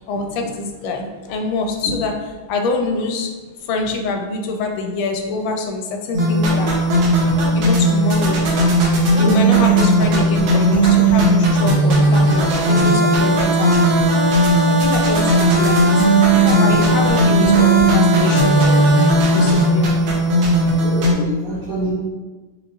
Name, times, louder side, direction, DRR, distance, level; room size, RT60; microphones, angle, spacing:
voice 1, 0.1-3.3 3.7-6.7 7.5-8.5 9.1-13.8 14.7-16.1 16.4-18.8 19.3-20.0, left 3 dB, 80° left, 3 dB, 1.4 m, -25 dB
sound 1, 6.1-21.1, right 1 dB, 90° right, 1.6 m, -15 dB
voice 2, 9.2-9.5 20.4-20.5 20.8-21.9, right 2 dB, 70° right, -5 dB, 0.8 m, -26 dB
5.8 x 3.1 x 2.4 m, 1.3 s
omnidirectional pair, 2.1 m